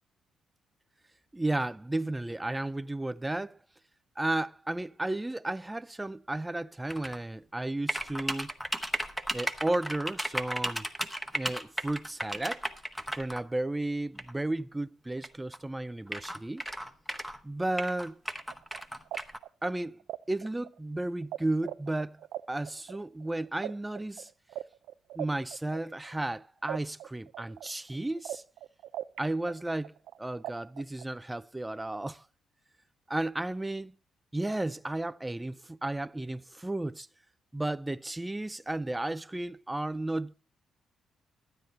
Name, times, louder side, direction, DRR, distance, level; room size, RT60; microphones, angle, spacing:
voice 1, 1.3-3.6 4.2-8.5 9.3-10.9 11.3-12.7 13.2-16.6 17.4-18.2 19.6-20.0 20.3-22.2 22.5-24.3 25.1-28.4 29.2-32.2 33.1-33.9 34.3-37.1 37.5-40.3, right 2 dB, 10° right, 0.4 m, -33 dB
sound 1, 6.9-7.2 7.9-13.4 14.2-14.3 15.2-15.3 15.5-15.6 16.1-17.4 17.8-19.4, equal, 5° left, 1.1 m, -34 dB
sound 2, 18.4-21.4 21.6-26.3 26.7-29.2 29.5-31.1, right 13 dB, 85° right, 0.5 m, -40 dB
12.5 x 9.1 x 4.0 m
cardioid pair, 90°, 0 cm